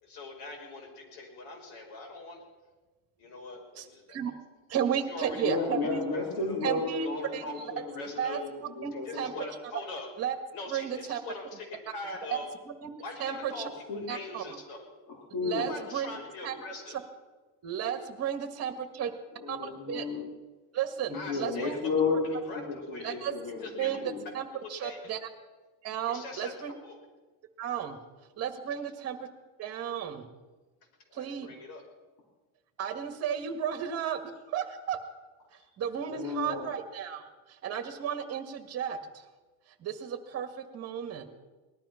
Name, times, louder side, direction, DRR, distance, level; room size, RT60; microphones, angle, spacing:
voice 1, 0.0-2.4 3.2-4.4 4.9-6.6 7.0-7.5 7.9-8.4 8.9-10.1 10.5-12.5 13.0-14.9 15.6-17.0 21.1-21.8 22.2-23.2 23.6-24.0 24.5-25.1 26.1-27.0 31.1-31.8, left 2 dB, 70° left, 1 dB, 5.5 m, -43 dB
voice 2, 3.8-4.3 4.7-6.1 6.6-7.1 7.3-7.4 8.2-8.4 8.8-9.3 10.2-10.3 10.7-11.2 12.7-12.9 13.2-13.5 14.1-14.4 15.4-16.2 16.4-16.5 17.6-19.1 19.5-20.1 20.7-21.8 23.0-23.3 23.8-24.0 24.3-24.5 24.7-25.2 25.8-26.7 27.6-28.0 28.4-29.3 29.6-30.3 31.1-31.5 32.8-34.2 34.5-35.0 35.8-39.3 39.8-41.4, right 9 dB, 35° right, 8 dB, 1.7 m, -33 dB
voice 3, 5.4-9.5 13.9-14.0 15.3-15.7 19.4-20.2 21.1-24.2 36.1-36.7, left 4 dB, 55° left, -2 dB, 3.6 m, -33 dB
20.0 x 12.5 x 5.8 m, 1.2 s
cardioid pair, 160°, 43 cm